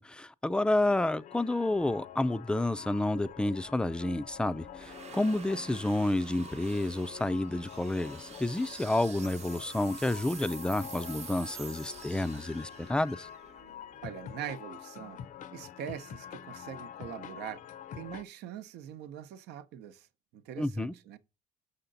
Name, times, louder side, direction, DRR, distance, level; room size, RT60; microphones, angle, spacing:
voice 1, 0.0-13.3 20.6-20.9, left 1 dB, 5° left, 0.3 m, -30 dB
sound 1, 0.9-18.2, left 9 dB, 50° left, 0.6 m, -47 dB
sound 2, 3.3-14.5, right 7 dB, 40° right, 0.7 m, -49 dB
voice 2, 14.0-15.2 15.5-17.6 17.9-20.1 20.3-21.2, right 10 dB, 80° right, 0.8 m, -42 dB
6.6 x 5.7 x 3.9 m
cardioid pair, 110°, 17 cm